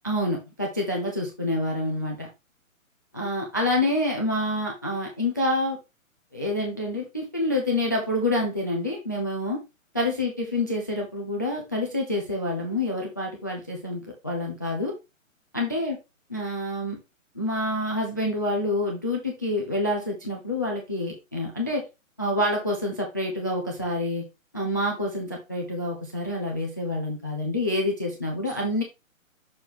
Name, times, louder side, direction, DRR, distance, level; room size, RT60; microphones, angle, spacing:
voice 1, 0.0-2.3 3.1-5.8 6.3-9.6 9.9-14.9 15.5-16.0 16.3-17.0 17.3-21.8 22.2-24.3 24.5-28.8, left 1 dB, 15° left, -1 dB, 0.4 m, -27 dB
6.2 x 4.5 x 3.4 m, 0.24 s
hypercardioid pair, 150°, 41 cm